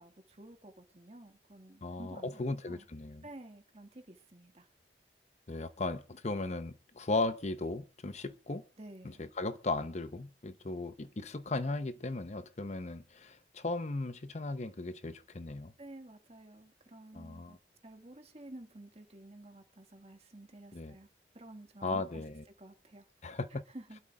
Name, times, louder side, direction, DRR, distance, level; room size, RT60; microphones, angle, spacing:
voice 1, 0.0-2.9 3.2-4.7 8.8-9.2 15.8-17.6 17.8-21.1 21.3-22.2 22.6-23.1 23.5-24.0, right 1 dB, 35° right, 1.7 m, -51 dB
voice 2, 1.8-3.2 5.5-8.6 9.0-15.7 17.1-17.6 20.7-20.9 21.8-22.4 23.2-23.6, left 2 dB, 40° left, 0.7 m, -36 dB
25.0 x 12.0 x 2.3 m
head